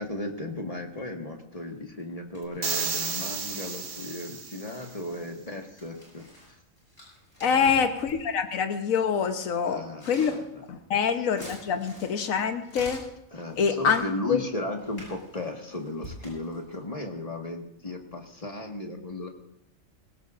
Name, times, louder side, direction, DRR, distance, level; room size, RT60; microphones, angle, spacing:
voice 1, 0.0-6.2 7.4-7.9 9.6-10.6 13.3-19.3, left 1 dB, 25° left, 2 dB, 1.6 m, -35 dB
sound 1, 1.5-2.0 2.3-8.4 9.1-9.2 9.8-14.1 14.8-16.8, equal, 55° left, 7.8 m, -48 dB
sound 2, 2.6-4.9, right 5 dB, 50° right, 1.3 m, -32 dB
voice 2, 7.4-10.3 10.7-13.0 13.6-14.0 14.3-14.4, left 6 dB, 80° left, 7 dB, 1.4 m, -25 dB
21.0 x 18.0 x 2.5 m, 0.82 s
omnidirectional pair, 1.4 m